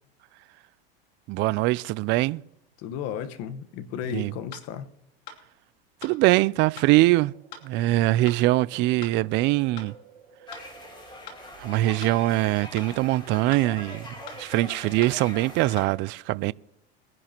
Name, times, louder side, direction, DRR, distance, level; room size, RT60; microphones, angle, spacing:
voice 1, 1.3-2.4 4.1-4.3 6.0-7.3 7.6-9.9 11.6-16.5, right 18 dB, 40° right, 0.4 m, -23 dB
voice 2, 2.8-4.9, left 8 dB, 55° left, 1.3 m, -34 dB
sound 1, 4.5-4.7 5.3-5.4 6.0-6.2 6.8-6.9 7.5-7.7 8.3-8.4 9.0-9.2 9.8-9.9 10.5-10.7 11.3-11.4 12.0-12.2 12.8-12.9 13.5-13.7 14.3-14.4 15.0-15.2 15.8-15.9, left 7 dB, 80° left, 2.9 m, -42 dB
sound 2, 6.5-12.2, right 7 dB, 75° right, 2.4 m, -54 dB
sound 3, 10.5-15.8, left 1 dB, 15° left, 3.9 m, -42 dB
22.5 x 10.5 x 3.0 m
hypercardioid pair, 105°, 29 cm